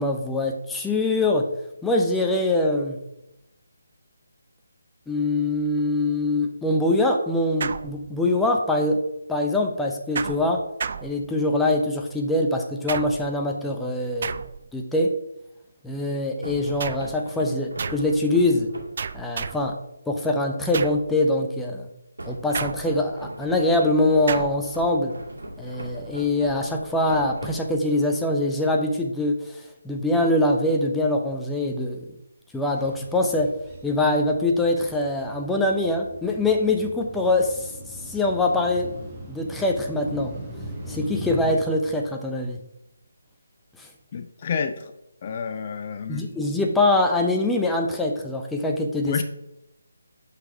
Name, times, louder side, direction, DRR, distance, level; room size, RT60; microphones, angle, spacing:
voice 1, 0.0-1.5 1.8-3.0 5.1-9.0 9.3-10.6 11.0-14.4 14.7-15.1 15.8-18.7 19.1-19.8 20.1-21.9 22.3-25.1 25.6-29.4 29.8-32.0 32.5-33.5 33.8-37.7 38.1-38.9 39.3-40.3 40.9-42.6 46.1-49.2, left 2 dB, 5° left, 1 dB, 0.7 m, -23 dB
sound 1, 7.6-8.5 10.2-11.7 12.9-13.4 14.2-14.8 16.8-17.2 17.8-18.2 19.0-19.8 20.7-21.1 22.5-23.2 24.3-24.7, right 6 dB, 45° right, 0.4 m, -32 dB
sound 2, 16.4-19.1 22.2-28.1, right 1 dB, 75° right, 2.4 m, -39 dB
sound 3, 32.7-41.5, right 1 dB, 15° right, 1.4 m, -39 dB
voice 2, 44.1-44.7 45.2-46.4 49.0-49.2, left 6 dB, 35° left, 8 dB, 0.5 m, -29 dB
5.8 x 5.6 x 5.1 m, 0.86 s
figure-of-eight pair, 150°, 0 cm